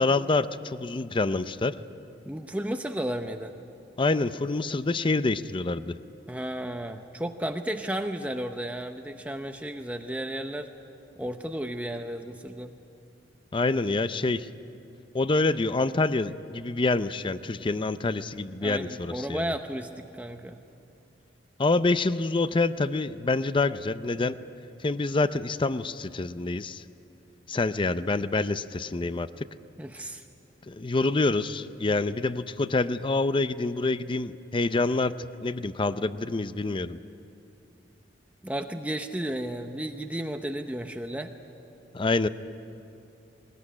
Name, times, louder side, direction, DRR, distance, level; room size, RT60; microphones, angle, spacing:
voice 1, 0.0-1.8 4.0-5.9 13.5-14.5 15.1-19.5 21.6-24.4 24.8-26.8 27.5-29.3 30.7-35.1 35.4-37.0 41.9-42.3, left 3 dB, 30° left, 13 dB, 0.5 m, -26 dB
voice 2, 2.3-3.6 6.3-10.7 11.2-12.7 18.6-20.6 29.8-30.2 38.4-41.3, right 1 dB, 10° right, 5 dB, 0.7 m, -33 dB
21.0 x 20.0 x 9.8 m, 2.6 s
head